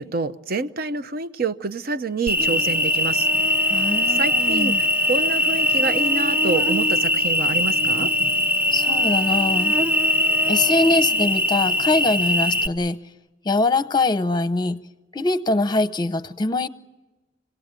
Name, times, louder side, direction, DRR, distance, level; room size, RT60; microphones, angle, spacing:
voice 1, 0.0-3.3 4.1-8.1, right 3 dB, 55° right, 0.7 m, -27 dB
Cricket, 2.3-12.7, left 1 dB, 10° right, 0.8 m, -21 dB
voice 2, 3.7-4.8 8.7-9.8 10.5-13.0 13.4-14.8 15.1-16.7, left 2 dB, 25° left, 0.7 m, -23 dB
27.0 x 18.0 x 9.0 m
head